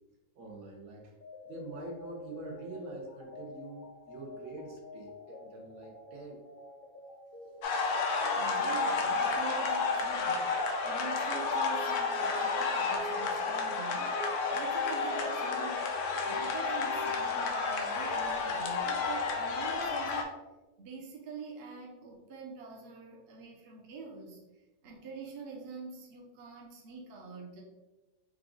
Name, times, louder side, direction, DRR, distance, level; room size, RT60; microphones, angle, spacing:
voice 1, 0.4-1.1 1.5-6.4, right 2 dB, 70° right, 0 dB, 1.2 m, -45 dB
sound 1, 1.2-17.8, equal, 55° left, 0.5 m, -46 dB
sound 2, 7.6-20.2, left 4 dB, 85° left, 1.2 m, -31 dB
voice 2, 8.4-15.9 16.3-20.4 20.8-24.4 24.8-27.6, right 4 dB, 50° right, -1 dB, 0.9 m, -45 dB
4.8 x 2.3 x 3.7 m, 1.1 s
omnidirectional pair, 1.6 m